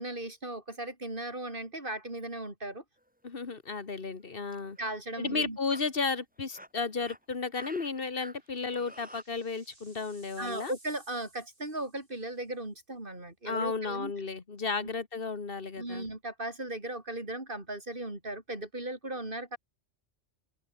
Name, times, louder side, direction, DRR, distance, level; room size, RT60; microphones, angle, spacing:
voice 1, 0.0-2.8 4.8-5.6 10.4-14.1 15.8-19.6, right 1 dB, 50° right, 4.8 m, -37 dB
sound 1, 3.0-3.2 4.1-4.2 4.5-5.0 5.3-5.8 6.4-9.2, equal, 5° right, 6.4 m, -49 dB
voice 2, 3.2-4.8 5.2-10.7 13.5-16.1, left 4 dB, 55° left, 2.0 m, -33 dB
sound 2, 5.6-5.9 6.2-6.3 7.8-12.4, right 2 dB, 80° right, 5.9 m, -59 dB
open air
omnidirectional pair, 1.2 m